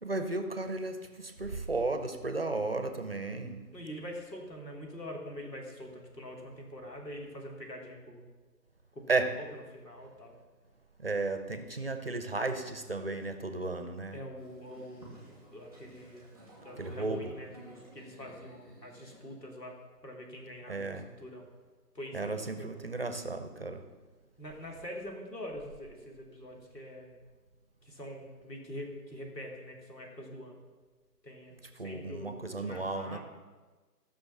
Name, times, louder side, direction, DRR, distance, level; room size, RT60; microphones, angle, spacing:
voice 1, 0.0-3.6 9.1-9.3 11.0-14.2 16.8-17.3 20.7-21.1 22.1-23.8 31.7-33.2, right 3 dB, 35° right, 8 dB, 0.8 m, -34 dB
voice 2, 3.7-8.3 9.0-9.4 9.7-10.3 14.1-15.3 15.5-16.3 16.6-19.8 20.0-21.5 22.0-22.7 24.4-27.2 27.8-30.6 31.2-31.6 31.8-33.2, equal, 80° left, 0 dB, 3.7 m, -44 dB
Boat Water vehicle, 14.4-19.3, right 1 dB, 5° left, 1.5 m, -54 dB
14.0 x 6.4 x 7.2 m, 1.3 s
figure-of-eight pair, 160°, 49 cm